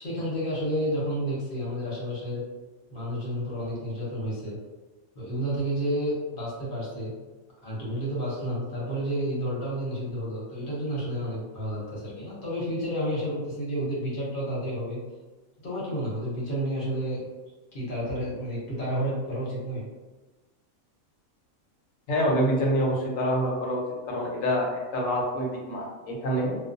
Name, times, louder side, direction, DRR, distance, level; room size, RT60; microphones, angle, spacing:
voice 1, 0.0-2.4 2.9-4.6 5.1-7.1 7.6-15.0 15.6-17.3 17.7-19.9, equal, 45° left, -7 dB, 0.9 m, -30 dB
voice 2, 22.1-23.8 24.1-26.6, equal, 75° left, -2 dB, 1.0 m, -26 dB
2.3 x 2.2 x 2.5 m, 1.2 s
omnidirectional pair, 1.4 m